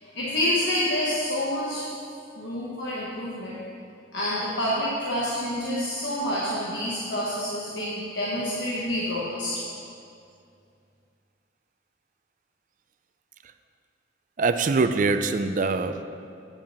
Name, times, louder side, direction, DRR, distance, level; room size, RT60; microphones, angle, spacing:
voice 1, 0.0-1.8 2.4-3.6 4.1-9.6, left 1 dB, 70° left, -6 dB, 1.2 m, -28 dB
voice 2, 14.4-16.0, right 4 dB, 45° right, 9 dB, 0.4 m, -24 dB
9.1 x 5.1 x 7.0 m, 2.4 s
head